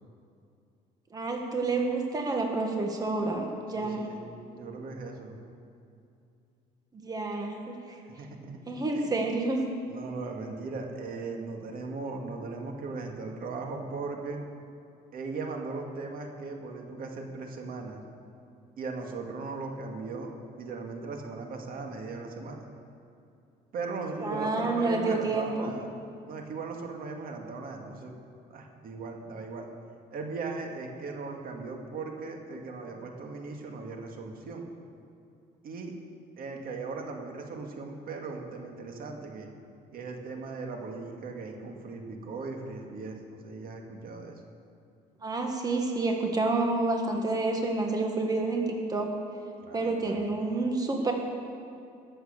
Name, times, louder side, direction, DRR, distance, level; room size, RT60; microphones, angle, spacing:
voice 1, 1.1-4.1 6.9-8.0 8.7-9.6 24.2-25.7 45.2-48.6 48.9-49.1 49.7-51.1, right 3 dB, 20° right, 2 dB, 1.8 m, -29 dB
voice 2, 3.7-4.2 4.5-5.4 8.0-9.1 9.9-14.4 15.1-18.0 18.8-20.3 20.6-22.7 23.7-25.9 26.3-28.1 28.5-29.7 30.1-34.7 35.6-35.9 36.4-39.5 39.9-44.3 49.6-50.4, right 3 dB, 60° right, 2 dB, 2.1 m, -38 dB
22.5 x 8.0 x 6.7 m, 2.6 s
cardioid pair, 110°, 17 cm